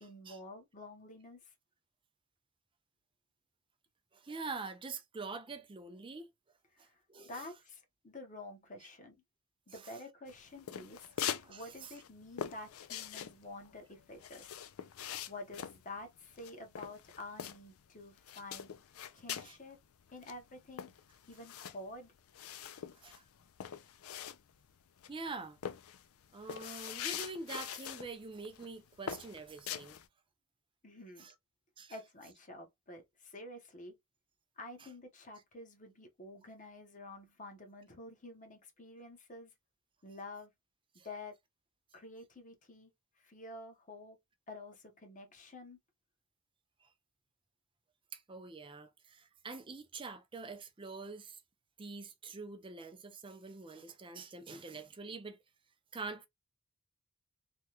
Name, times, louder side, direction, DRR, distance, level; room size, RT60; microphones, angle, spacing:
voice 1, 0.0-1.5 6.7-7.0 7.2-9.2 9.7-11.1 11.5-14.6 15.3-18.7 19.1-19.8 20.1-20.9 21.3-22.1 30.8-31.3 31.9-34.0 34.6-39.5 40.0-40.5 41.0-41.4 41.9-42.9 43.2-44.2 44.5-45.8, left 2 dB, 35° left, 1.0 m, -49 dB
voice 2, 4.1-6.3 6.8-7.5 9.8-9.9 11.4-11.9 19.3-19.6 22.9-23.2 25.1-25.6 26.3-30.0 31.2-31.3 31.8-32.0 41.0-41.1 46.8-46.9 48.1-51.4 51.8-55.4 55.9-56.3, right 3 dB, 25° right, 0.5 m, -45 dB
sound 1, 10.3-11.5 11.8-17.9 18.2-19.6 19.9-20.0 20.2-24.7 25.0-25.3 25.6-28.1 28.4-28.7 29.1-30.1, left 9 dB, 85° left, 0.4 m, -43 dB
3.4 x 2.2 x 2.8 m
head